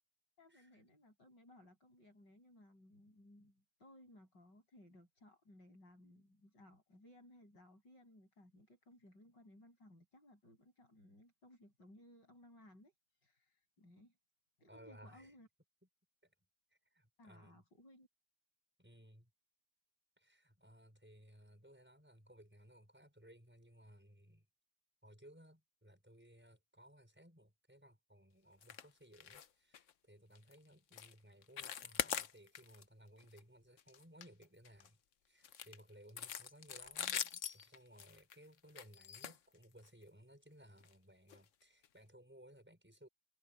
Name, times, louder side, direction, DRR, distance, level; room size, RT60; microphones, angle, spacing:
voice 1, 0.4-12.9 13.2-14.2 14.6-15.5 17.2-18.1, left 1 dB, 75° left, 8.9 m, -62 dB
voice 2, 14.7-15.4 16.2-16.3 16.7-17.6 18.8-19.3 20.2-24.5 25.0-35.0 35.2-43.1, equal, 5° right, 5.6 m, -61 dB
sound 1, 28.6-28.9 29.1-29.5 29.7-29.9 30.4-30.5 30.9-31.1 31.4-32.8 33.2-33.4 33.8-34.9 35.4-40.0 40.8-40.9 41.3-41.4 41.8-41.9, left 9 dB, 55° left, 1.0 m, -43 dB
omnidirectional pair, 1.9 m